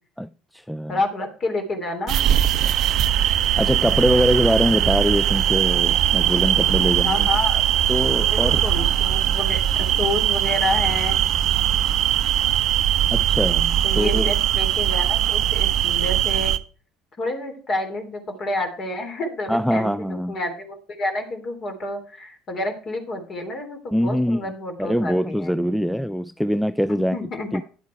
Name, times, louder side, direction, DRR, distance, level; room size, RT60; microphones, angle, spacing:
voice 1, 0.2-1.0 3.6-7.3 7.9-8.6 13.1-14.3 19.5-20.4 23.9-24.5 24.8-27.2 27.5-27.6, equal, ahead, 0.4 m, -23 dB
voice 2, 0.9-2.2 6.8-7.6 8.2-11.2 13.8-16.5 17.2-25.6 26.9-27.5, left 2 dB, 40° left, 3.1 m, -29 dB
sound 1, 2.1-16.6, right 11 dB, 50° right, 0.6 m, -20 dB
11.0 x 8.2 x 4.5 m
figure-of-eight pair, 60°, 0 cm